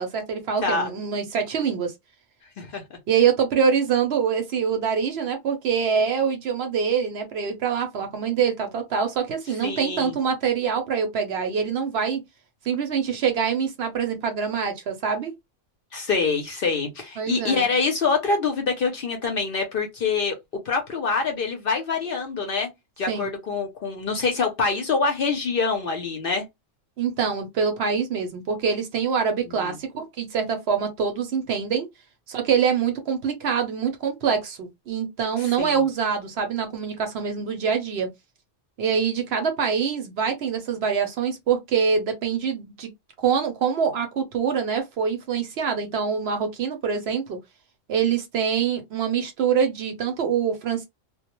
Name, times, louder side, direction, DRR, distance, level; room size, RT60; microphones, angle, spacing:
voice 1, 0.0-1.9 3.1-12.2 12.6-15.3 17.2-17.7 23.1-23.3 27.0-31.9 32.3-38.1 38.8-42.9 43.2-47.4 47.9-50.8, right 6 dB, 65° right, 0.8 m, -25 dB
voice 2, 9.6-10.1 15.9-20.4 20.7-22.7 23.0-26.4 29.5-29.7 35.6-35.8, left 4 dB, 60° left, 0.7 m, -25 dB
2.2 x 2.0 x 2.9 m
omnidirectional pair, 1.3 m